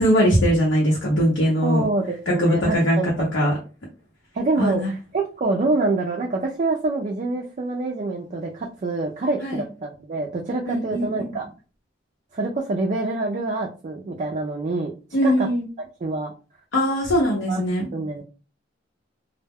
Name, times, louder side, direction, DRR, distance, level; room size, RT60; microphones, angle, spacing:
voice 1, 0.0-1.8 2.3-3.5 4.6-4.9 9.4-9.6 10.7-11.4 15.1-15.6 16.7-17.9, equal, 85° left, -3 dB, 0.7 m, -21 dB
voice 2, 1.6-3.5 4.3-11.5 12.3-14.9 15.2-15.5 15.8-16.3 17.3-17.6 17.9-18.2, right 3 dB, 40° right, 0 dB, 0.4 m, -26 dB
2.1 x 2.0 x 3.4 m, 0.35 s
head